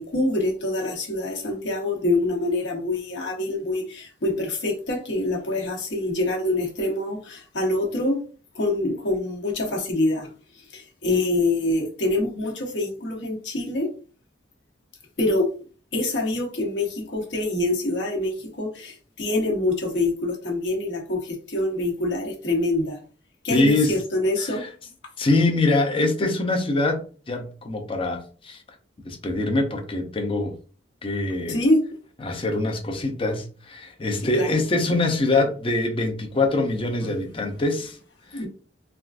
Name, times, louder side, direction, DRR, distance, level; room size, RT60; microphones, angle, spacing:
voice 1, 0.0-8.2 8.5-10.3 10.7-13.9 15.2-15.5 15.9-23.0 23.4-24.6 31.5-31.8 34.3-34.5 37.0-37.1 38.3-38.5, left 2 dB, 70° left, 1.0 m, -25 dB
voice 2, 23.5-23.9 24.4-24.5 25.2-28.6 29.1-30.5 31.0-31.6 32.2-38.0, left 2 dB, 30° left, 0.6 m, -24 dB
3.5 x 2.5 x 2.4 m
head